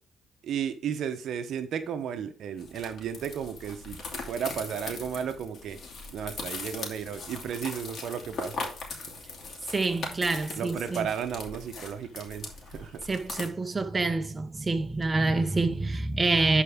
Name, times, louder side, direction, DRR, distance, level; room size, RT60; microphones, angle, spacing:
voice 1, 0.4-5.8 6.1-8.7 10.6-13.0, right 8 dB, 70° right, 0.9 m, -34 dB
sound 1, 2.6-13.5, left 3 dB, 55° left, 2.8 m, -40 dB
voice 2, 9.7-11.1 13.0-16.6, right 3 dB, 25° right, 1.0 m, -27 dB
11.5 x 4.6 x 3.6 m
cardioid pair, 90°, 0 cm